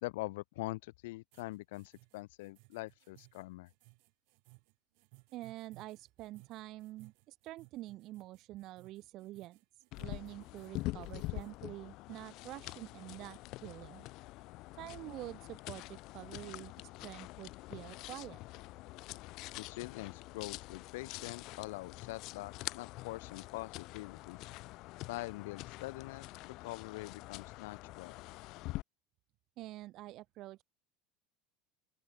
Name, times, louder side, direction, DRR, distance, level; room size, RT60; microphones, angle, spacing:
voice 1, 0.0-3.7 19.6-24.4 25.1-28.2, left 20 dB, 80° left, 0.7 m, -44 dB
sound 1, 1.3-11.6, right 40 dB or more, 65° right, 2.8 m, -63 dB
voice 2, 5.3-14.1 14.8-18.4 29.6-30.6, right 16 dB, 45° right, 0.5 m, -47 dB
sound 2, 9.9-28.8, left 20 dB, 50° left, 1.3 m, -46 dB
open air
supercardioid pair, 145°, 0 cm